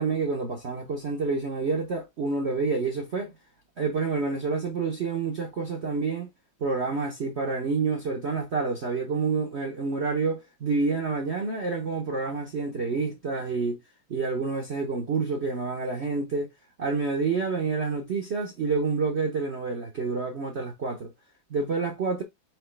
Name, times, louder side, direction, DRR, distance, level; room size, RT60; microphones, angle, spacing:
voice 1, 0.0-3.3 3.8-6.3 6.6-13.8 14.1-16.5 16.8-21.1 21.5-22.2, right 4 dB, 55° right, 0.7 m, -28 dB
4.7 x 2.9 x 3.2 m
omnidirectional pair, 2.2 m